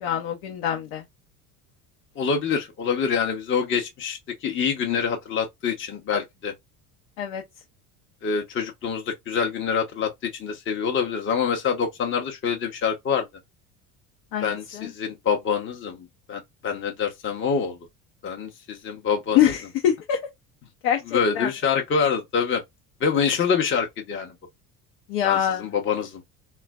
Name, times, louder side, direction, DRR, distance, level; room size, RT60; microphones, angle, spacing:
voice 1, 0.0-1.0 7.2-7.4 14.3-14.9 19.3-20.2 20.8-21.5 25.1-25.7, left 10 dB, 65° left, 0.7 m, -24 dB
voice 2, 2.2-6.5 8.2-13.3 14.4-17.8 18.2-19.5 21.1-22.6 23.0-24.3 25.2-26.2, left 6 dB, 25° left, 0.7 m, -26 dB
3.1 x 2.1 x 2.2 m
hypercardioid pair, 70°, 46 cm